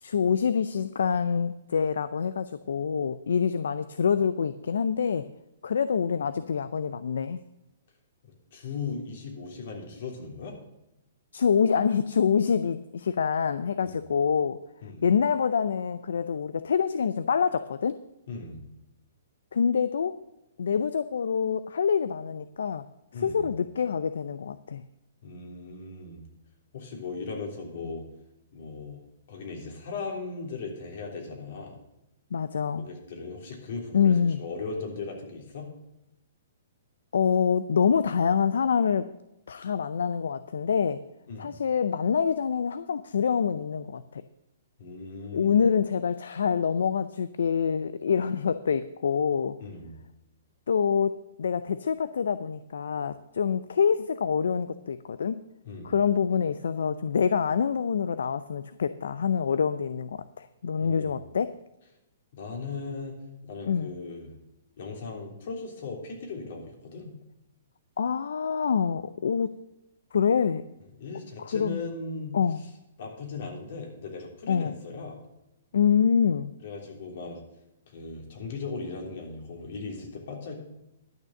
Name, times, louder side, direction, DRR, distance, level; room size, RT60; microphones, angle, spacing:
voice 1, 0.0-5.3 5.6-7.4 11.3-14.6 15.0-18.0 19.5-20.2 20.6-22.8 23.2-24.8 32.3-32.9 33.9-34.4 37.1-39.1 39.5-41.0 41.4-44.2 45.3-49.6 50.7-55.4 55.8-61.5 63.7-63.9 68.0-69.6 70.1-70.6 71.4-71.8 72.3-72.6 74.5-74.8 75.7-76.5, left 6 dB, 75° left, 13 dB, 0.5 m, -26 dB
voice 2, 8.5-10.6 13.8-14.0 14.8-15.0 18.3-18.6 23.1-23.5 25.2-26.2 26.7-28.0 28.5-29.0 29.3-31.8 32.8-35.7 41.3-41.5 44.8-45.6 49.6-49.9 55.6-55.9 60.8-61.2 62.3-64.3 64.8-67.1 70.9-72.4 73.0-75.2 76.6-77.4 77.9-80.6, left 4 dB, 60° left, 1 dB, 3.3 m, -38 dB
11.5 x 6.5 x 7.3 m, 0.89 s
hypercardioid pair, 130°, 0 cm